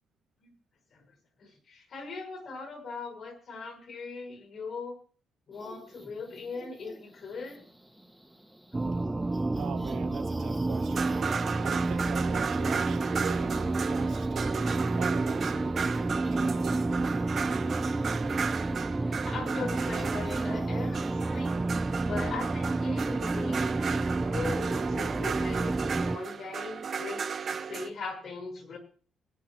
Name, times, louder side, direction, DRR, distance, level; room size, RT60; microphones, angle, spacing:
voice 1, 1.4-5.0 5.5-7.6 8.9-9.2 19.1-21.6 22.0-23.8 24.2-28.8, left 4 dB, 60° left, 5.3 m, -40 dB
sound 1, 5.5-21.5, equal, ahead, 1.6 m, -50 dB
sound 2, 8.7-26.2, right 2 dB, 20° right, 0.5 m, -30 dB
voice 2, 9.5-14.6 14.9-17.2, right 8 dB, 70° right, 1.0 m, -42 dB
sound 3, 10.7-27.9, right 6 dB, 50° right, 0.9 m, -35 dB
24.0 x 9.7 x 3.0 m
cardioid pair, 90°, 0 cm